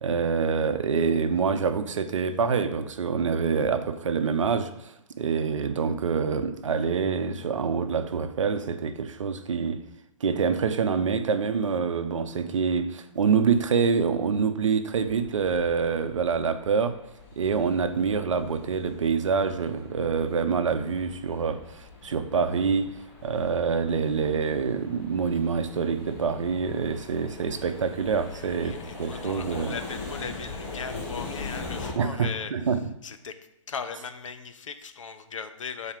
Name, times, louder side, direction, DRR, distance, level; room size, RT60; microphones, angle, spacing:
voice 1, 0.0-9.8 10.2-17.0 17.4-29.7 32.0-32.9, right 5 dB, 75° right, 0.7 m, -26 dB
sound 1, 14.9-31.9, left 3 dB, 40° left, 2.3 m, -42 dB
voice 2, 28.3-32.5 33.0-33.3 33.7-35.9, left 6 dB, 70° left, 0.8 m, -38 dB
7.1 x 4.2 x 5.1 m
figure-of-eight pair, 120°, 17 cm